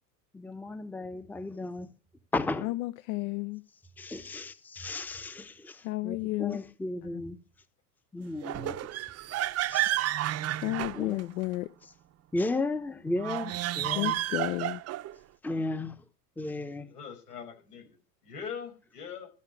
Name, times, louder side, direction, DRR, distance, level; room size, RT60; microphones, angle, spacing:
voice 1, 0.3-1.9 2.3-2.7 4.0-7.4 8.1-8.8 9.7-9.9 10.9-11.2 12.3-14.2 15.4-16.0 16.4-16.9, left 2 dB, 5° left, 0.8 m, -34 dB
voice 2, 2.6-3.6 5.8-6.6 7.0-7.2 10.5-11.7 13.9-14.8, left 19 dB, 65° left, 0.8 m, -32 dB
sound 1, 8.4-11.5 13.1-15.2, right 14 dB, 35° right, 0.7 m, -31 dB
voice 3, 16.9-18.0 18.2-19.3, left 6 dB, 90° left, 5.6 m, -42 dB
14.0 x 5.7 x 6.0 m
hypercardioid pair, 90°, 45 cm